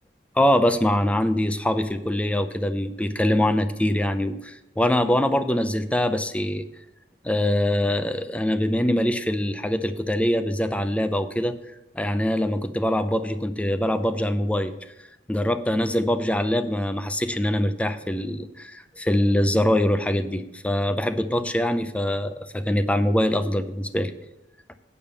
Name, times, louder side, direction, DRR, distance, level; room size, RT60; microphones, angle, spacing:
voice 1, 0.4-6.7 7.2-11.5 11.9-14.7 15.3-24.1, left 1 dB, 5° left, 9 dB, 0.5 m, -23 dB
8.9 x 5.2 x 6.8 m, 0.88 s
head